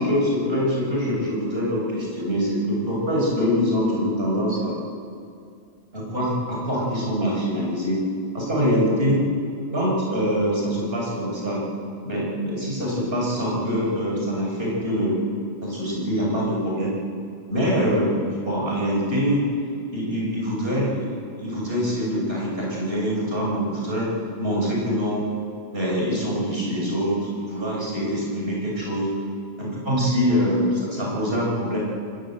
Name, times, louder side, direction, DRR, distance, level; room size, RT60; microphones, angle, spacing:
voice 1, 0.0-4.8 5.9-8.0 8.3-9.2 9.7-11.6 12.0-15.2 15.6-16.9 17.5-19.5 19.9-21.1 21.4-24.1 24.4-25.3 25.7-29.1 29.6-31.8, equal, 45° right, -4 dB, 7.2 m, -24 dB
26.0 x 19.5 x 7.9 m, 2.4 s
omnidirectional pair, 1.4 m